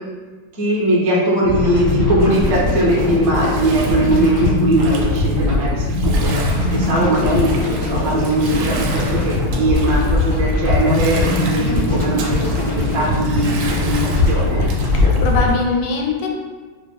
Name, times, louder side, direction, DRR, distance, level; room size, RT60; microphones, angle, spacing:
voice 1, 0.5-6.3 6.7-13.9 14.3-14.7, right 1 dB, 50° right, -5 dB, 0.8 m, -20 dB
sound 1, 1.4-15.5, left 2 dB, 25° left, 0.5 m, -20 dB
Bathtub (filling or washing), 2.2-15.7, right 3 dB, 75° right, 1.3 m, -34 dB
voice 2, 14.9-16.3, left 4 dB, 85° left, 1 dB, 1.6 m, -21 dB
4.7 x 2.2 x 3.4 m, 1.4 s
omnidirectional pair, 2.3 m